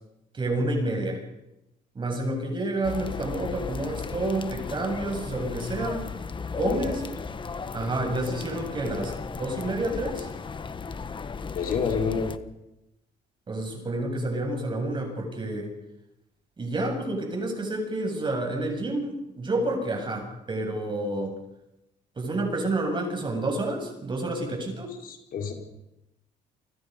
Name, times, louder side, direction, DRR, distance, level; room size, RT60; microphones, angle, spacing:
voice 1, 0.3-1.2 1.9-6.1 6.6-7.0 7.7-10.3 13.5-15.7 16.6-21.4 22.2-24.9, right 2 dB, 30° right, 3 dB, 7.6 m, -29 dB
sound 1, 2.8-12.4, left 5 dB, 30° left, 1.4 m, -35 dB
voice 2, 6.6-7.0 7.8-7.9 11.5-12.3 25.0-25.5, left 6 dB, 60° left, 2 dB, 5.0 m, -28 dB
29.0 x 25.0 x 5.5 m, 0.89 s
cardioid pair, 110°, 17 cm